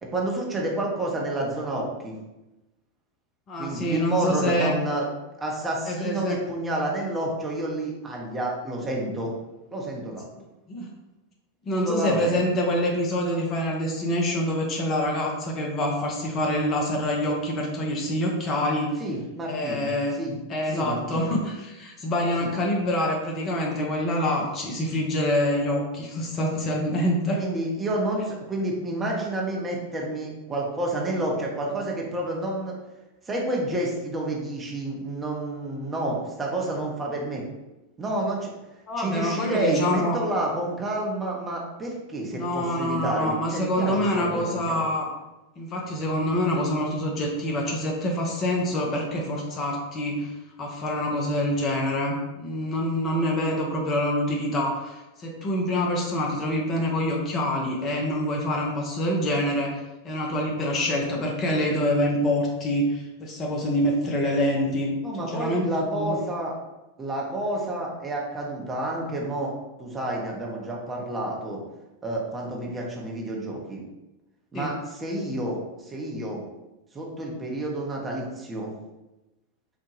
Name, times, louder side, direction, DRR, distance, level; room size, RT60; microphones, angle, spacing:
voice 1, 0.0-2.2 3.6-5.1 5.4-9.3 9.7-10.2 11.7-12.4 19.0-20.3 20.7-21.4 22.4-22.5 27.4-32.8 33.3-37.4 38.0-38.5 39.0-44.8 65.0-66.5 67.0-69.5 69.8-71.6 72.0-73.8 74.5-76.5 76.9-78.7, right 1 dB, 15° right, -2 dB, 0.7 m, -29 dB
voice 2, 3.5-4.8 5.9-6.4 10.4-10.9 11.7-18.9 19.5-20.2 20.5-27.4 38.9-40.2 42.3-45.1 45.6-50.3 50.6-64.9 65.3-66.1 74.5-74.7, left 1 dB, 30° left, -1 dB, 0.6 m, -26 dB
3.9 x 2.2 x 3.0 m, 1.0 s
figure-of-eight pair, 90°, 0 cm